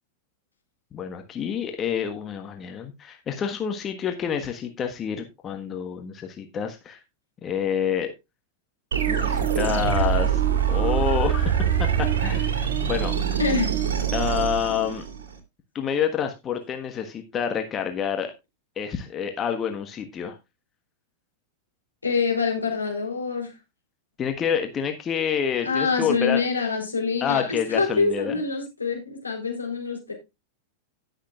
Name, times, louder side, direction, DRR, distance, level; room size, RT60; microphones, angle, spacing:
voice 1, 0.9-7.0 7.4-8.1 9.1-10.4 10.7-13.2 14.1-15.0 15.7-18.3 18.8-20.3 24.2-26.4 27.2-28.3, left 7 dB, 25° left, 5 dB, 1.4 m, -28 dB
sound 1, 8.9-15.4, right 9 dB, 60° right, 2.5 m, -24 dB
voice 2, 13.4-13.7 22.0-23.5 25.6-30.1, left 4 dB, 80° left, 1 dB, 3.8 m, -25 dB
17.5 x 6.6 x 2.4 m, 0.23 s
figure-of-eight pair, 90°, 0 cm